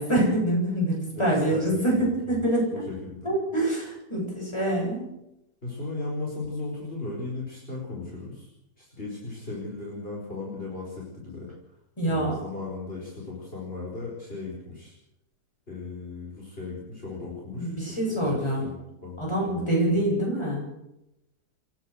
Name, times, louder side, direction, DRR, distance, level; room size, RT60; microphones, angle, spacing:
voice 1, 0.0-2.9 3.2-5.1 12.0-12.3 17.6-18.7 19.2-20.6, right 1 dB, 15° left, -2 dB, 8.0 m, -25 dB
voice 2, 1.1-2.4 2.9-3.3 5.6-8.5 8.8-11.5 12.0-14.9 15.7-19.7, left 3 dB, 35° left, -4 dB, 5.4 m, -37 dB
29.0 x 11.5 x 8.0 m, 0.88 s
omnidirectional pair, 1.6 m